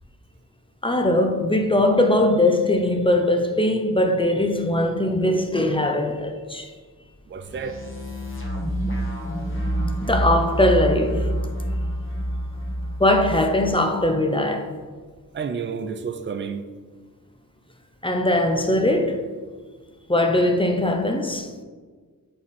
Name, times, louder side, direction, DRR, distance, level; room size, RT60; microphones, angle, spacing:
voice 1, 0.8-6.7 10.0-11.3 13.0-14.7 18.0-19.3 20.1-21.5, left 1 dB, 15° left, 0.5 m, -20 dB
voice 2, 7.3-7.8 15.3-16.6, right 6 dB, 35° right, 0.4 m, -30 dB
sound 1, 7.4-13.7, right 1 dB, 35° left, 1.3 m, -27 dB
7.6 x 4.2 x 4.1 m
wide cardioid pair, 135°, 34 cm